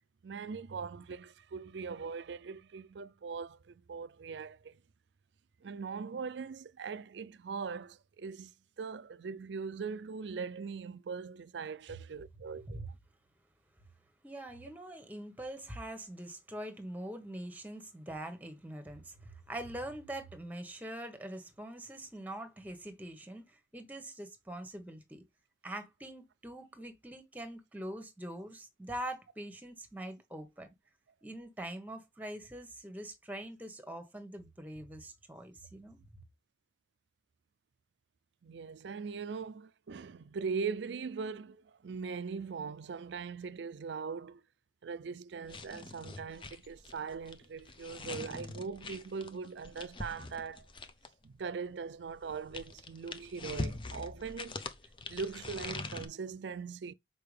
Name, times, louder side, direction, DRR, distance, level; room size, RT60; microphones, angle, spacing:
voice 1, 0.2-4.8 5.6-8.5 8.8-12.9 38.4-44.4 44.8-50.7 51.2-54.6 55.1-56.9, right 5 dB, 80° right, 0.4 m, -41 dB
voice 2, 14.2-25.2 25.6-30.7 31.2-36.0, right 1 dB, 10° right, 1.2 m, -43 dB
sound 1, 45.4-51.2 52.1-56.1, left 3 dB, 30° left, 0.6 m, -43 dB
6.7 x 4.6 x 3.3 m
head